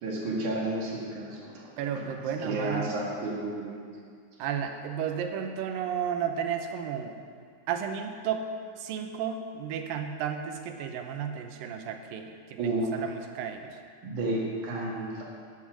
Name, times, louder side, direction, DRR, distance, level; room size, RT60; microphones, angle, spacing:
voice 1, 0.0-1.7 2.0-2.1 2.4-3.8 12.6-12.9 14.0-15.2, right 2 dB, 60° right, -4 dB, 3.4 m, -31 dB
voice 2, 1.8-3.0 4.4-7.2 7.7-8.5 8.8-13.8, right 8 dB, 80° right, 6 dB, 2.5 m, -33 dB
11.5 x 9.9 x 6.3 m, 2.1 s
omnidirectional pair, 4.1 m